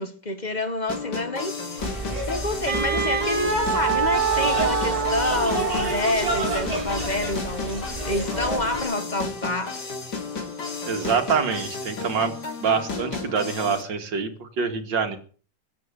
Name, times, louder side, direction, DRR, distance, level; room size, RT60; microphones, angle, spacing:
voice 1, 0.0-1.9 2.3-9.8, left 2 dB, 25° left, 1.4 m, -28 dB
sound 1, 0.9-13.8, left 4 dB, 60° left, 3.4 m, -33 dB
sound 2, 1.8-8.8, right 1 dB, 20° right, 6.8 m, -30 dB
Wind instrument woodwind instrument, 2.7-6.7, right 7 dB, 35° right, 1.6 m, -26 dB
voice 2, 10.8-12.3 12.6-15.2, right 5 dB, 75° right, 2.7 m, -25 dB
15.5 x 8.4 x 9.6 m
omnidirectional pair, 2.0 m